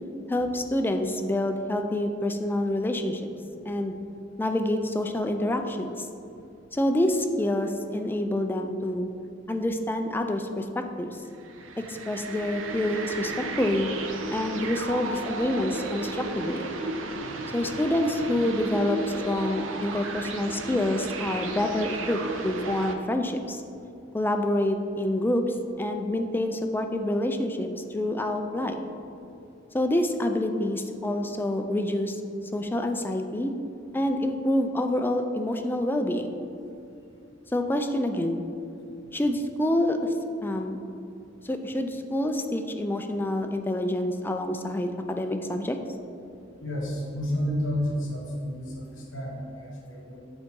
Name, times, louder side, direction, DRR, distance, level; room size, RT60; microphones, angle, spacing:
voice 1, 0.3-3.2 3.7-3.9 4.4-6.1 6.7-9.1 9.5-11.2 11.8-13.9 14.3-16.7 17.5-23.6 24.1-25.4 25.8-28.8 29.7-32.2 32.5-33.5 33.9-36.4 37.5-38.4 39.1-40.1 40.4-40.8 41.4-45.8, left 1 dB, 10° left, 5 dB, 0.3 m, -27 dB
sound 1, 11.3-23.0, right 2 dB, 90° right, 0.5 m, -34 dB
voice 2, 46.6-50.2, equal, 75° left, -2 dB, 1.2 m, -31 dB
7.9 x 4.0 x 3.7 m, 2.7 s
head